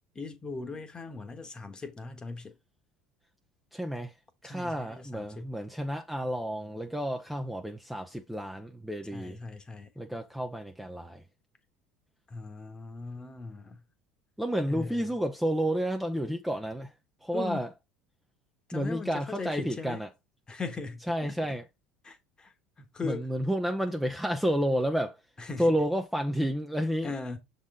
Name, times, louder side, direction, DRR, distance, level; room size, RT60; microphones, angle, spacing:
voice 1, 0.1-2.6 4.4-5.5 9.1-9.9 12.3-13.8 14.7-15.2 17.3-17.6 18.7-20.0 20.5-21.5 22.0-23.3 25.4-25.7 27.0-27.4, left 4 dB, 25° left, 1.3 m, -39 dB
voice 2, 3.7-4.1 4.4-9.4 10.0-11.2 14.4-16.9 17.2-17.7 18.7-20.1 21.1-21.6 23.0-25.2 25.6-27.1, equal, 5° right, 0.7 m, -30 dB
6.2 x 4.0 x 3.8 m
hypercardioid pair, 85°, 3 cm